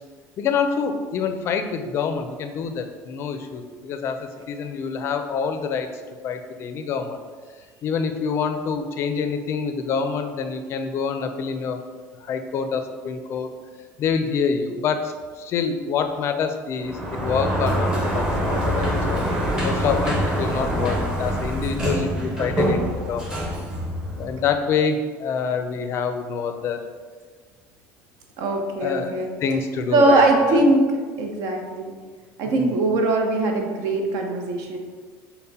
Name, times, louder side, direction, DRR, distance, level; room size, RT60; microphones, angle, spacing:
voice 1, 0.4-5.9 6.2-7.2 7.8-11.8 12.2-13.5 14.0-19.2 19.6-23.4 24.2-26.8 28.8-30.6 32.5-32.7, left 6 dB, 45° left, 7 dB, 0.4 m, -26 dB
Sliding door, 16.8-24.6, equal, 10° right, 0.7 m, -25 dB
voice 2, 28.4-29.3 29.9-30.9 31.2-31.9 32.4-34.8, right 2 dB, 65° right, 2 dB, 0.7 m, -20 dB
5.5 x 2.1 x 4.1 m, 1.5 s
cardioid pair, 140°, 6 cm